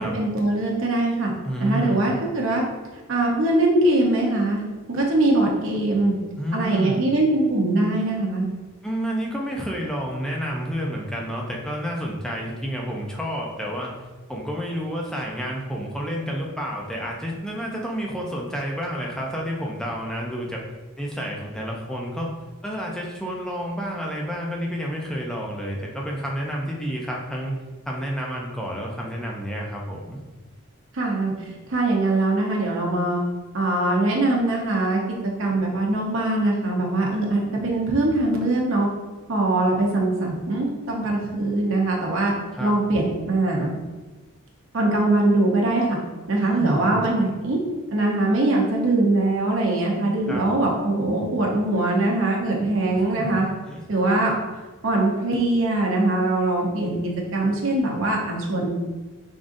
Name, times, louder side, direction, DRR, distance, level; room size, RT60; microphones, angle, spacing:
voice 1, 0.0-1.3 1.6-2.6 3.1-4.6 4.9-6.1 6.5-8.5 30.9-33.2 33.5-38.9 39.3-42.3 42.6-43.7 44.7-46.0 46.3-47.6 47.9-53.5 53.9-54.3 54.8-58.8, right 2 dB, 65° right, -2 dB, 0.7 m, -22 dB
voice 2, 1.4-2.0 6.4-7.0 8.8-13.9 14.3-20.6 21.0-22.3 22.6-27.6 27.9-30.2 42.5-42.7 46.4-47.0 50.3-50.4 53.2-53.8, equal, 5° left, -2 dB, 0.5 m, -30 dB
3.7 x 3.6 x 2.6 m, 1.2 s
head